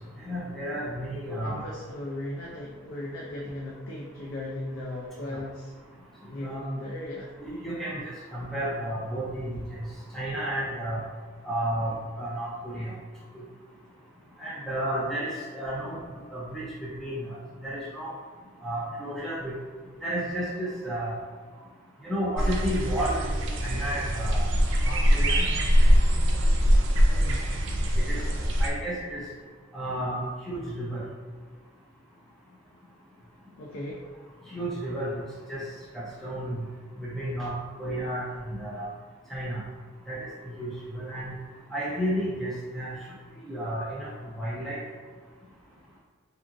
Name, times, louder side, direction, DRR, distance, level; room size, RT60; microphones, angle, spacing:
voice 1, 0.2-1.6 6.4-6.7 7.4-9.6 10.1-11.0 11.4-12.9 14.4-16.0 16.3-16.6 17.0-17.4 17.6-18.1 18.6-19.5 20.0-21.1 22.0-24.5 24.9-25.5 28.1-28.2 28.6-29.2 29.7-31.0 34.5-35.2 35.5-35.6 35.9-36.6 37.0-37.5 37.8-38.9 39.3-39.6 40.1-41.3 41.7-42.9 43.4-44.1 44.4-44.8, right 1 dB, ahead, -8 dB, 0.4 m, -32 dB
voice 2, 1.4-5.7 6.3-7.3 27.1-27.5 33.6-34.1, left 1 dB, 70° left, -4 dB, 0.4 m, -37 dB
sound 1, 22.4-28.7, equal, 65° right, 0.4 m, -23 dB
2.7 x 2.5 x 2.5 m, 1.5 s
head